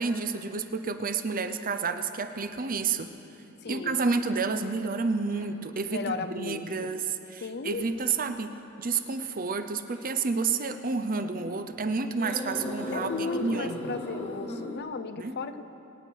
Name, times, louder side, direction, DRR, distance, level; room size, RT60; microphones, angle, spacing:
voice 1, 0.0-3.1 3.7-8.5 8.8-13.9 15.2-15.4, right 4 dB, 40° right, 9 dB, 0.7 m, -30 dB
voice 2, 3.6-4.0 5.9-6.9 7.4-7.9 12.9-15.6, left 4 dB, 50° left, 11 dB, 0.6 m, -35 dB
sound 1, 5.3-5.5 6.2-6.3 7.7-7.9 9.0-9.3 9.9-10.1 12.2-14.8, left 1 dB, 30° left, 1.6 m, -37 dB
25.0 x 8.8 x 4.6 m, 2.9 s
head